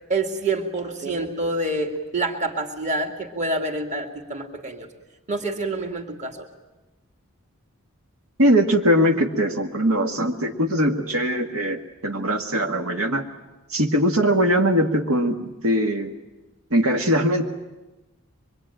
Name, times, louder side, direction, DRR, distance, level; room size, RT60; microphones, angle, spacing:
voice 1, 0.1-4.9 5.3-6.5, right 2 dB, 35° right, 4 dB, 2.4 m, -27 dB
voice 2, 8.4-13.3 13.7-16.1 16.7-17.5, equal, 80° right, 3 dB, 1.8 m, -21 dB
24.5 x 23.0 x 9.1 m, 1.1 s
head